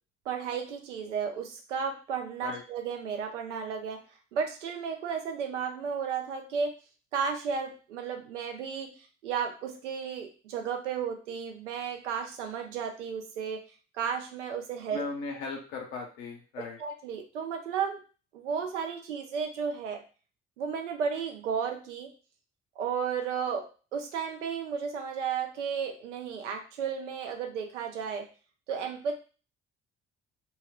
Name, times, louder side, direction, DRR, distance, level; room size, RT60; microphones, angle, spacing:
voice 1, 0.3-4.0 4.3-6.7 7.1-8.9 9.2-13.6 13.9-15.0 16.8-18.0 18.3-20.0 20.6-22.1 22.8-23.7 23.9-28.3 28.7-29.2, right 6 dB, 85° right, 4 dB, 0.5 m, -33 dB
voice 2, 14.9-16.8, left 4 dB, 70° left, 1 dB, 0.8 m, -37 dB
2.2 x 2.1 x 3.6 m, 0.36 s
figure-of-eight pair, 45°, 35 cm